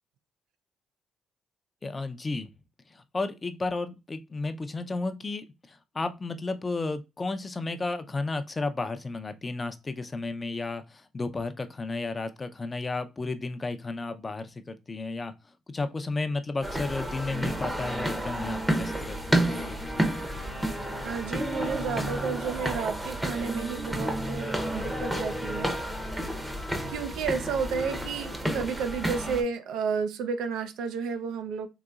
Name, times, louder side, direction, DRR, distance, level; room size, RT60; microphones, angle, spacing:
voice 1, 1.8-2.5 2.9-15.3 15.7-20.0, left 3 dB, 30° left, 0.5 m, -33 dB
sound 1, 16.6-29.4, right 1 dB, 10° right, 0.7 m, -31 dB
voice 2, 21.0-26.1 26.9-31.7, right 6 dB, 90° right, 0.5 m, -32 dB
3.9 x 2.9 x 2.3 m
cardioid pair, 90°, 0 cm